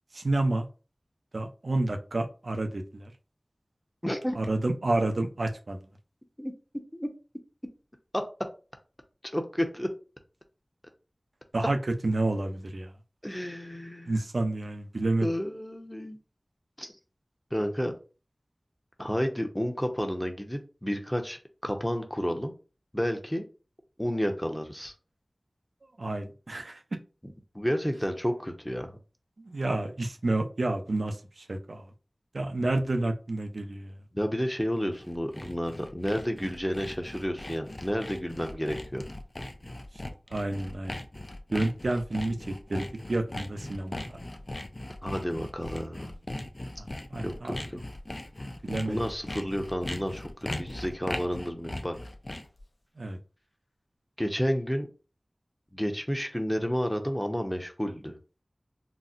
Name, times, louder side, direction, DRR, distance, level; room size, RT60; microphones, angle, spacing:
voice 1, 0.1-0.7 1.3-3.1 4.3-5.8 11.5-11.8 12.0-12.9 14.1-15.3 26.0-26.8 29.4-31.8 32.3-34.0 40.3-41.0 41.5-44.0 46.8-47.6 48.6-49.0 53.0-53.2, right 2 dB, 85° right, 6 dB, 0.5 m, -30 dB
voice 2, 4.0-4.5 6.4-6.5 6.9-7.1 8.1-8.2 9.3-9.9 13.2-14.1 15.2-16.2 16.8-16.9 17.5-17.9 19.0-22.5 22.9-23.4 24.0-24.9 27.5-28.9 34.1-39.0 45.0-46.1 47.2-47.8 48.9-52.0 54.2-54.9 55.7-58.2, equal, 10° left, 4 dB, 0.6 m, -31 dB
Sawing, 34.8-52.6, left 1 dB, 45° left, 0.4 m, -39 dB
4.0 x 2.1 x 2.4 m, 0.34 s
wide cardioid pair, 45°, 0 cm